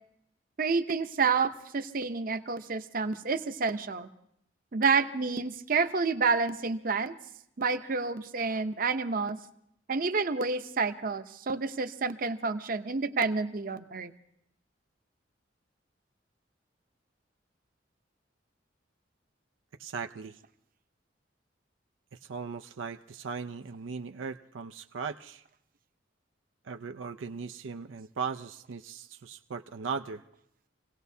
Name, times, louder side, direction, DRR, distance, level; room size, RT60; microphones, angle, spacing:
voice 1, 0.6-4.1 4.7-7.1 7.6-9.4 9.9-14.1, right 4 dB, 45° right, 9 dB, 0.7 m, -29 dB
voice 2, 19.8-20.4 22.1-25.4 26.6-30.2, right 5 dB, 85° right, 7 dB, 0.5 m, -38 dB
27.0 x 17.0 x 2.7 m, 0.76 s
head